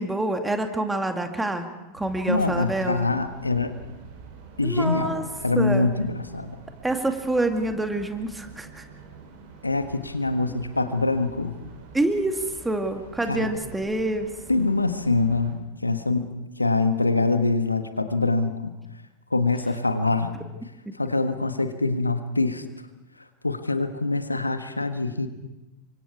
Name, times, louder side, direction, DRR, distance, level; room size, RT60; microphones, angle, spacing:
voice 1, 0.0-1.7 1.9-3.1 4.6-5.2 5.6-5.9 6.8-8.8 10.5-10.6 11.9-14.3 20.9-21.0, right 2 dB, 5° right, 5 dB, 2.2 m, -27 dB
sound 1, 2.0-15.5, right 5 dB, 50° right, 6.9 m, -46 dB
voice 2, 2.3-3.8 4.6-6.6 9.6-11.5 13.3-13.5 14.5-18.7 19.3-20.4 20.9-22.6 23.4-25.3, left 3 dB, 80° left, 9 dB, 1.4 m, -24 dB
29.0 x 25.0 x 4.8 m, 1.0 s
figure-of-eight pair, 90°, 0 cm